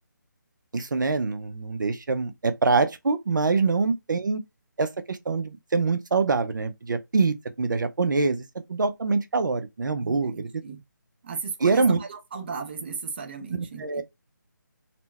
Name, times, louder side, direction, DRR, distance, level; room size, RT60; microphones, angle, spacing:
voice 1, 0.7-4.4 4.8-8.4 8.7-10.5 11.6-12.0 13.5-14.0, right 4 dB, 70° right, 0.6 m, -25 dB
voice 2, 10.0-10.8 11.2-14.0, right 5 dB, 30° right, 0.6 m, -35 dB
4.2 x 2.2 x 4.1 m
figure-of-eight pair, 165°, 11 cm